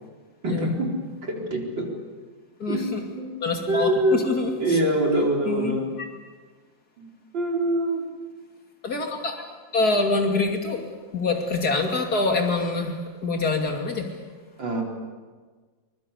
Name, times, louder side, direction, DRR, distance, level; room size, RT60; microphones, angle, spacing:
voice 1, 0.4-0.9 1.3-1.9 2.7-3.4 3.7-4.2 4.6-5.8 7.0-7.1 7.3-8.0 10.3-10.4 14.6-14.8, right 1 dB, 75° right, 0 dB, 4.9 m, -24 dB
voice 2, 2.6-3.0 3.4-4.8 5.4-5.7 8.8-9.5 9.7-10.9 11.1-14.2, left 3 dB, 55° left, 3 dB, 3.2 m, -25 dB
24.0 x 23.0 x 8.3 m, 1.4 s
omnidirectional pair, 2.0 m